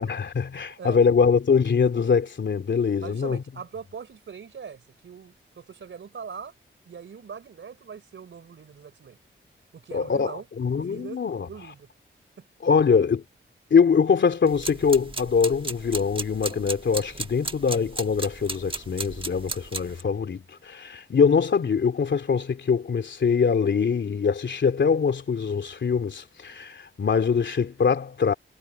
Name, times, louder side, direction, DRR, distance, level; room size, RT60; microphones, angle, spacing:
voice 1, 0.0-3.4 9.9-11.5 12.6-13.2 13.7-28.3, left 6 dB, 60° left, 3.0 m, -23 dB
voice 2, 3.0-6.5 6.8-9.2 9.7-10.5 10.8-11.2 11.5-11.9 12.4-12.5, right 6 dB, 70° right, 3.9 m, -41 dB
sound 1, 14.5-20.0, right 3 dB, 25° right, 1.3 m, -35 dB
wide cardioid pair, 135°, 21 cm